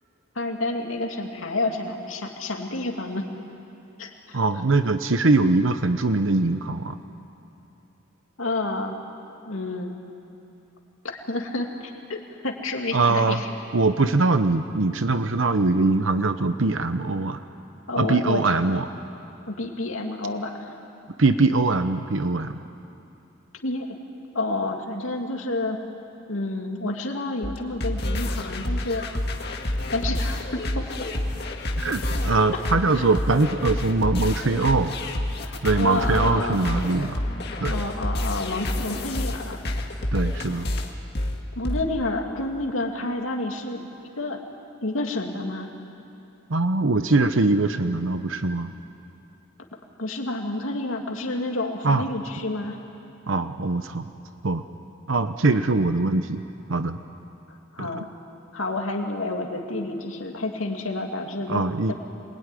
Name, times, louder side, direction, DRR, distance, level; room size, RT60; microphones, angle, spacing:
voice 1, 0.3-3.3 4.0-4.4 8.4-9.0 9.4-10.0 11.0-13.5 17.9-18.6 19.5-20.8 23.6-23.9 24.3-25.8 26.3-29.0 29.9-30.8 32.9-33.0 35.4-36.6 37.6-39.6 41.6-43.9 44.2-44.4 44.8-45.7 50.0-52.8 57.5-58.1 58.5-61.6 61.9-62.0, left 2 dB, 80° left, 2 dB, 2.7 m, -29 dB
voice 2, 4.3-7.0 12.9-13.4 13.7-17.4 18.0-18.8 21.2-22.6 31.8-34.9 35.6-37.2 37.6-37.7 40.1-40.7 46.5-48.7 51.8-52.1 53.3-54.1 54.4-54.6 55.1-56.4 56.7-57.0 57.8-58.1 61.5-61.9, right 3 dB, 70° right, 9 dB, 0.9 m, -22 dB
sound 1, 27.4-41.8, left 1 dB, 55° left, 2.0 m, -28 dB
26.5 x 20.5 x 10.0 m, 2.8 s
head